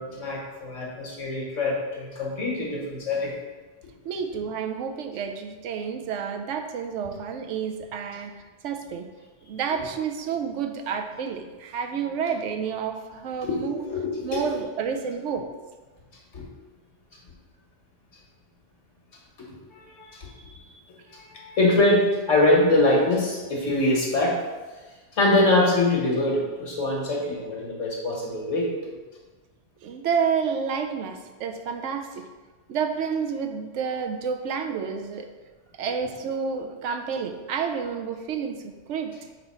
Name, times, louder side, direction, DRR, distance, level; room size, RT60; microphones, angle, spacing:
voice 1, 0.0-3.3 13.4-14.4 16.3-16.5 19.7-20.5 21.1-24.4 25.1-28.7, left 2 dB, 90° left, -2 dB, 1.7 m, -24 dB
voice 2, 4.0-8.3 8.6-9.1 9.5-13.9 14.2-15.4 29.8-32.2 32.7-35.3 35.7-39.1, right 6 dB, 80° right, 5 dB, 0.9 m, -29 dB
4.2 x 4.0 x 5.6 m, 1.3 s
omnidirectional pair, 1.2 m